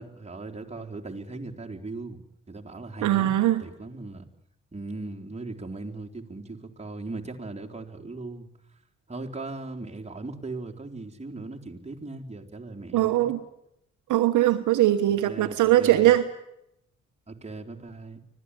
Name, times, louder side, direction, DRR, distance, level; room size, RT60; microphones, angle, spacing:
voice 1, 0.0-2.2 2.5-4.3 4.7-8.5 9.1-13.3 15.2-16.1 17.3-18.2, right 2 dB, 20° right, 1 dB, 4.0 m, -38 dB
voice 2, 3.0-3.6 12.9-13.4 14.1-16.2, right 14 dB, 70° right, 10 dB, 1.3 m, -21 dB
25.0 x 17.5 x 10.0 m, 0.81 s
hypercardioid pair, 45°, 32 cm